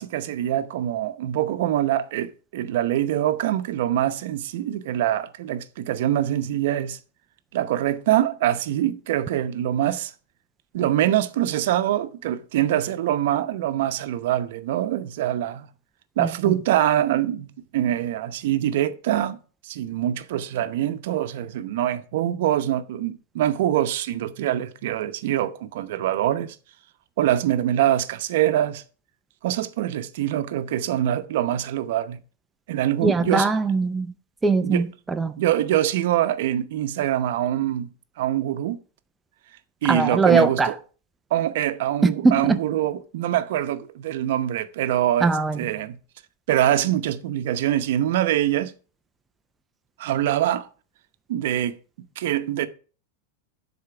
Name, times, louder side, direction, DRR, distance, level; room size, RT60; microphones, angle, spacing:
voice 1, 0.0-7.0 7.5-10.1 10.7-15.7 16.2-19.4 19.6-26.6 27.2-28.8 29.4-32.2 32.7-33.5 34.6-34.8 35.4-37.9 38.2-38.8 39.8-40.7 41.3-46.0 46.5-48.7 50.0-50.7 51.3-51.8 52.2-52.7, right 12 dB, 65° right, 0.7 m, -24 dB
voice 2, 16.2-16.5 33.0-34.1 34.4-35.3 39.9-40.7 42.0-42.6 45.2-45.6, right 3 dB, 10° right, 0.4 m, -21 dB
10.5 x 4.3 x 5.9 m
supercardioid pair, 155°, 0 cm